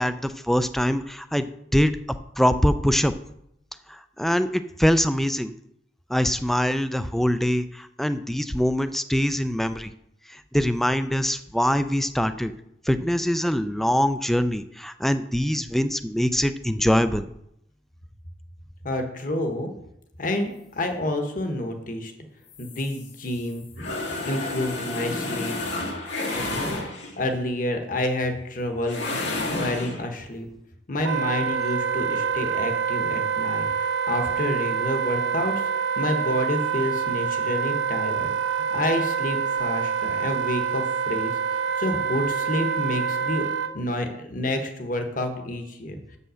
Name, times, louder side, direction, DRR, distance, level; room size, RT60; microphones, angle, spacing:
voice 1, 0.0-2.0 2.4-3.1 3.9-5.5 6.1-9.9 10.3-12.5 12.9-17.3, equal, ahead, 12 dB, 0.3 m, -23 dB
voice 2, 18.8-19.7 20.2-22.1 22.6-23.6 24.2-25.6 26.3-26.9 27.2-29.0 29.6-30.5 30.9-35.7 36.0-43.5 43.7-46.0, left 1 dB, 50° left, 5 dB, 1.2 m, -29 dB
sound 1, 22.5-27.3 28.8-30.0, left 2 dB, 80° left, 1.9 m, -31 dB
Wind instrument woodwind instrument, 31.0-43.7, right 6 dB, 80° right, 0.6 m, -26 dB
7.4 x 5.5 x 6.3 m, 0.79 s
head